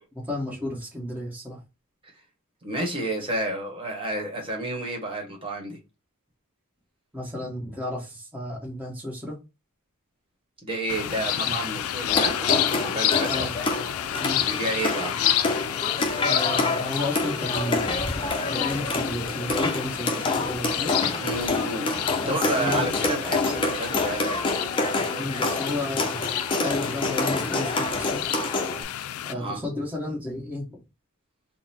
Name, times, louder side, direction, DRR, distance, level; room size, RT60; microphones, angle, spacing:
voice 1, 0.3-1.6 7.1-9.4 11.5-11.6 13.3-13.5 14.2-14.6 16.2-17.9 18.5-21.2 22.2-23.0 25.2-26.3 26.6-28.2 29.2-30.8, left 1 dB, 5° right, 1.2 m, -32 dB
voice 2, 2.6-5.8 10.6-12.4 12.8-13.5 14.4-15.1 21.2-24.4 29.3-29.6, right 1 dB, 25° right, 1.3 m, -30 dB
sound 1, 10.9-29.3, left 11 dB, 75° left, 0.4 m, -30 dB
sound 2, 12.1-28.8, left 2 dB, 25° left, 0.6 m, -27 dB
4.0 x 2.1 x 4.1 m
head